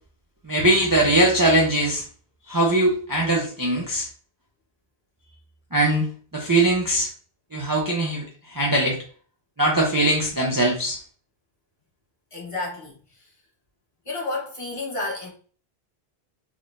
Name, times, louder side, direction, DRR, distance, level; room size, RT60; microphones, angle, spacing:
voice 1, 0.4-2.0 2.5-4.1 5.7-7.1 7.5-9.0 9.6-11.0, right 1 dB, 25° right, 0.6 m, -21 dB
voice 2, 12.3-13.3 14.0-15.3, left 2 dB, 30° left, 1.1 m, -31 dB
3.7 x 3.1 x 2.6 m
omnidirectional pair, 1.1 m